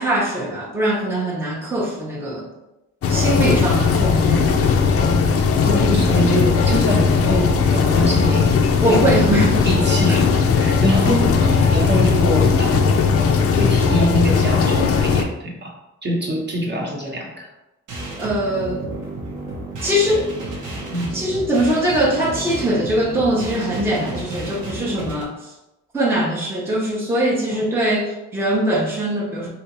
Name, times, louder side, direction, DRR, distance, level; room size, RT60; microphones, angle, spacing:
voice 1, 0.0-2.5 3.1-4.8 5.8-6.1 8.8-9.7 10.1-10.2 18.2-18.9 19.8-20.3 21.1-25.5 25.9-29.5, right 1 dB, 10° right, -4 dB, 0.7 m, -22 dB
sound 1, 3.0-15.2, left 5 dB, 50° left, 0.5 m, -17 dB
voice 2, 4.9-5.3 5.6-8.5 8.9-9.1 9.7-13.2 13.6-15.7 16.0-17.5 20.9-21.2, equal, 35° right, -1 dB, 0.9 m, -24 dB
sound 2, 17.9-25.2, right 2 dB, 90° right, 1.0 m, -32 dB
3.3 x 2.8 x 2.9 m, 0.96 s
cardioid pair, 90°, 30 cm